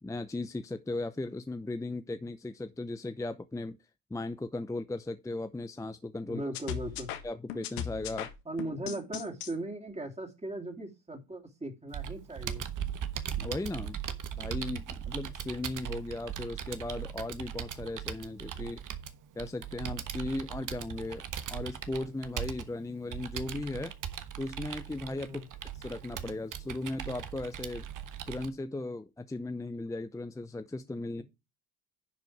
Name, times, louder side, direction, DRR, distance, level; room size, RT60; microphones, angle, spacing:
voice 1, 0.0-3.8 4.1-6.4 7.2-8.3 13.4-14.0 14.4-18.8 19.3-23.9 24.4-25.5 25.7-27.9 28.3-31.2, left 2 dB, 5° left, 0.7 m, -37 dB
voice 2, 6.3-7.1 8.5-12.7 25.3-25.4 31.2-31.3, right 1 dB, 15° right, 2.9 m, -38 dB
sound 1, 6.5-9.5, left 9 dB, 85° left, 1.5 m, -38 dB
Computer keyboard, 11.9-28.5, right 9 dB, 45° right, 1.3 m, -39 dB
10.5 x 4.8 x 4.7 m
hypercardioid pair, 70°, 44 cm